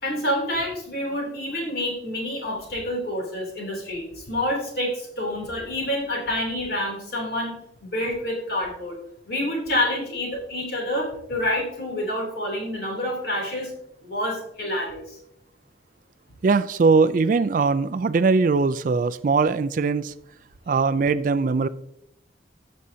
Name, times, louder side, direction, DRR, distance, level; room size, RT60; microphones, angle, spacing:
voice 1, 0.0-7.5 7.8-9.0 9.3-13.7 14.0-15.2, left 1 dB, 60° left, -1 dB, 3.0 m, -28 dB
voice 2, 16.4-20.1 20.7-21.7, right 4 dB, 45° right, 14 dB, 0.3 m, -21 dB
17.0 x 6.3 x 2.7 m, 0.77 s
head